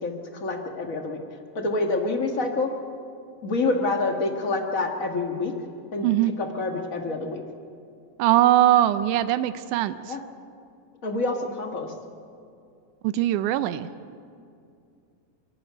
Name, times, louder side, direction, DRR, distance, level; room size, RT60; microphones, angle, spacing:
voice 1, 0.0-1.2 1.5-2.7 3.4-5.5 5.9-7.4 10.0-10.2 11.0-11.9, left 3 dB, 35° left, 3 dB, 1.4 m, -27 dB
voice 2, 8.2-10.2 13.0-13.9, right 13 dB, 90° right, 12 dB, 2.1 m, -21 dB
27.0 x 11.5 x 9.3 m, 2.4 s
omnidirectional pair, 3.5 m